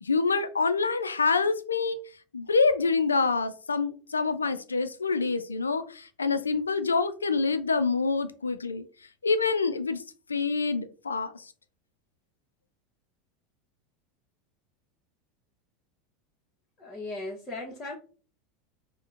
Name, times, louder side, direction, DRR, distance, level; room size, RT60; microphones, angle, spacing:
voice 1, 0.0-2.0 2.3-8.8 9.2-10.0 10.3-11.3, left 4 dB, 85° left, 0.3 m, -26 dB
voice 2, 16.8-18.0, left 2 dB, 25° left, 0.8 m, -37 dB
4.8 x 2.1 x 2.4 m
figure-of-eight pair, 80°, 0 cm